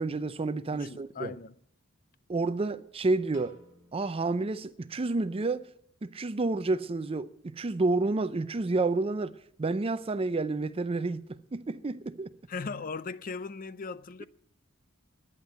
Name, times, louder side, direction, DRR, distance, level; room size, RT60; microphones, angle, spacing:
voice 1, 0.0-1.3 2.3-3.6 3.9-5.7 6.0-12.3, right 3 dB, 30° right, 0.5 m, -30 dB
voice 2, 0.7-1.6 12.5-14.3, left 4 dB, 40° left, 0.5 m, -38 dB
Piano, 3.3-5.6, left 1 dB, 75° left, 3.7 m, -59 dB
11.0 x 10.5 x 9.3 m
head